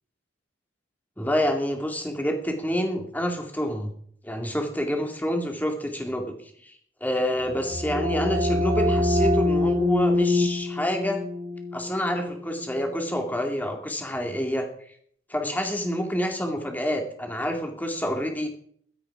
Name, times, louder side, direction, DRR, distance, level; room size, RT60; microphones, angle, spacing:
voice 1, 1.2-3.9 4.2-6.3 6.6-6.8 7.0-11.2 11.7-14.7 15.3-18.5, equal, 10° left, 3 dB, 2.6 m, -28 dB
sound 1, 7.4-13.0, left 1 dB, 40° right, 1.7 m, -25 dB
16.5 x 12.5 x 4.9 m, 0.63 s
head